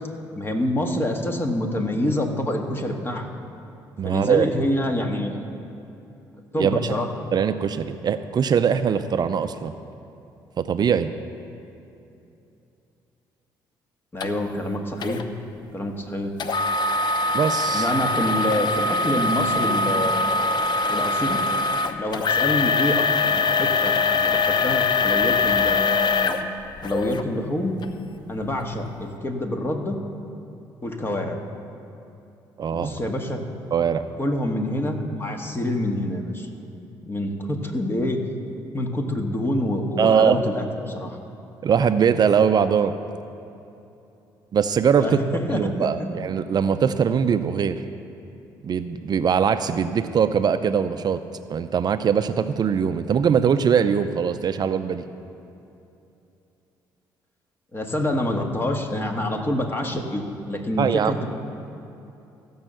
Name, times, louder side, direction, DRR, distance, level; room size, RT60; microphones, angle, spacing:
voice 1, 0.3-3.3 4.0-5.4 6.5-7.1 14.1-15.2 15.7-16.3 17.7-20.6 20.9-21.4 22.0-26.4 26.8-27.8 28.3-30.0 30.8-31.4 32.7-33.4 34.2-36.5 37.1-38.2 38.7-41.2 45.0-46.1 57.7-61.3, left 1 dB, 25° left, 3 dB, 1.6 m, -26 dB
voice 2, 4.0-4.5 6.6-6.9 7.3-9.7 10.6-11.1 17.3-17.9 32.6-32.9 33.7-34.0 40.0-40.4 41.6-42.9 44.5-45.2 45.5-47.8 48.6-51.2 51.5-55.0 60.8-61.1, right 7 dB, 50° right, 10 dB, 0.5 m, -21 dB
sound 1, 14.2-14.3 15.0-15.2 16.4-27.2 27.8-27.9 28.5-28.6, left 3 dB, 50° left, 0.8 m, -22 dB
15.0 x 5.5 x 7.6 m, 2.8 s
supercardioid pair, 65°, 9 cm